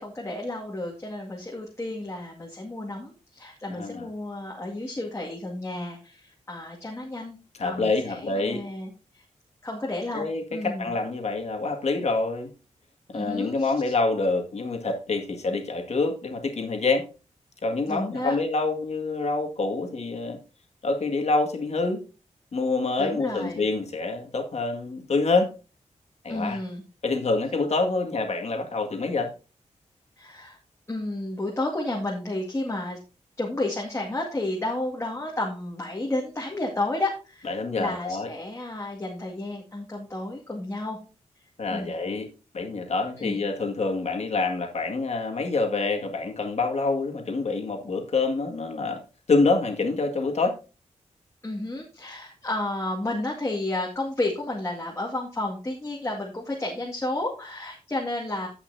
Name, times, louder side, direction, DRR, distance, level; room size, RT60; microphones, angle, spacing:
voice 1, 0.0-7.4 7.6-9.2 9.6-11.0 13.1-13.9 17.9-18.4 23.0-23.6 26.3-26.8 30.2-30.6 30.9-33.0 33.4-41.0 41.7-41.9 43.2-43.4 51.4-58.5, left 2 dB, 20° left, -2 dB, 2.0 m, -32 dB
voice 2, 3.7-4.1 7.6-8.6 10.1-12.5 13.1-17.1 17.6-20.4 20.8-22.0 22.5-25.5 26.2-26.6 27.0-29.3 37.4-38.3 41.6-42.3 42.5-49.0 49.3-50.5, left 3 dB, 60° left, 3 dB, 2.0 m, -26 dB
16.0 x 5.8 x 2.7 m, 0.33 s
wide cardioid pair, 85°, 13 cm